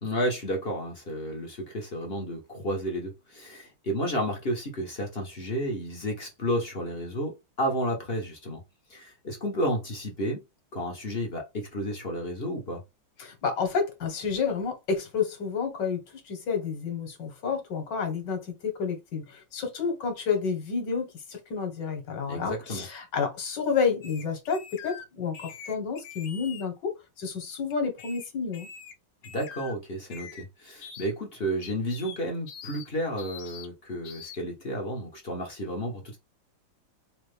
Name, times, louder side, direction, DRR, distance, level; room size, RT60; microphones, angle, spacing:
voice 1, 0.0-8.6 8.9-10.4 10.7-12.8 22.3-22.9 29.2-36.2, equal, 40° left, 1.0 m, -32 dB
voice 2, 13.2-28.7, left 5 dB, 65° left, 1.9 m, -30 dB
sound 1, 24.0-25.0 25.3-26.7 27.7-28.2 28.5-28.9 29.2-29.7 30.1-30.4 30.8-31.1 31.6-32.2 32.5-32.9 33.2-33.7 34.0-34.4, left 7 dB, 85° left, 1.6 m, -44 dB
4.4 x 2.5 x 3.3 m
omnidirectional pair, 2.2 m